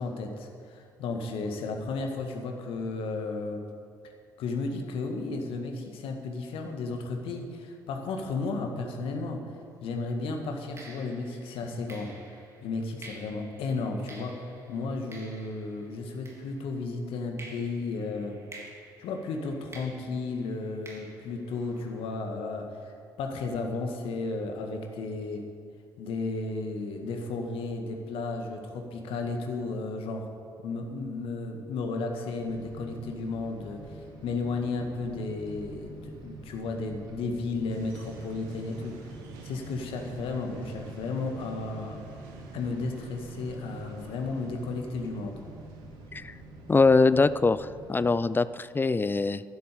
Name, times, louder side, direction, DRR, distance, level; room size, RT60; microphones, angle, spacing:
voice 1, 0.0-3.6 4.4-9.5 9.8-12.1 12.6-14.4 14.7-18.4 19.0-25.5 26.0-30.3 30.6-39.0 39.4-42.0 42.5-45.4, left 3 dB, 60° left, 4 dB, 1.8 m, -33 dB
sound 1, 9.6-9.8 10.8-16.9 17.4-22.1, right 2 dB, 25° right, 3.9 m, -51 dB
sound 2, 32.4-48.2, right 1 dB, 50° right, 2.9 m, -47 dB
sound 3, 37.7-46.8, right 3 dB, 70° right, 1.7 m, -49 dB
voice 2, 46.7-49.4, left 3 dB, 20° left, 16 dB, 0.5 m, -23 dB
11.5 x 11.5 x 6.9 m, 2.2 s
figure-of-eight pair, 45°, 11 cm